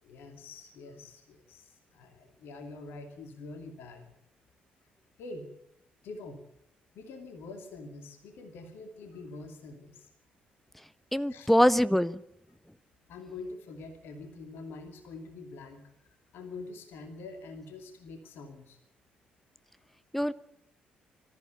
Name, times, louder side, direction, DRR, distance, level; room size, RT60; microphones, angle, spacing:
voice 1, 0.0-4.1 5.2-5.5 6.0-6.4 6.9-10.1 11.3-11.6 13.1-18.8, left 3 dB, 60° left, 6 dB, 2.6 m, -45 dB
voice 2, 11.1-12.2 20.1-20.3, equal, 5° left, 16 dB, 1.0 m, -23 dB
22.0 x 14.0 x 9.3 m, 0.79 s
figure-of-eight pair, 45°, 4 cm